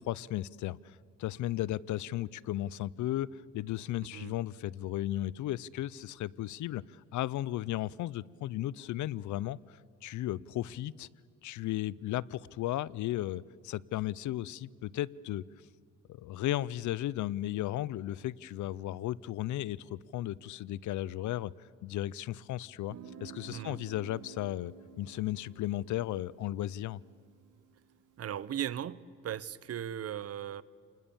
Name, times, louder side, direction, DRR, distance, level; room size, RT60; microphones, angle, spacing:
voice 1, 0.0-11.1 11.4-15.4 16.1-21.5 21.8-27.0, left 14 dB, 75° left, 23 dB, 0.6 m, -35 dB
Guitar, 22.9-28.5, right 8 dB, 85° right, 2.4 m, -52 dB
voice 2, 28.2-30.6, right 10 dB, 55° right, 19 dB, 0.8 m, -37 dB
28.5 x 20.5 x 7.1 m, 2.1 s
cardioid pair, 90°, 30 cm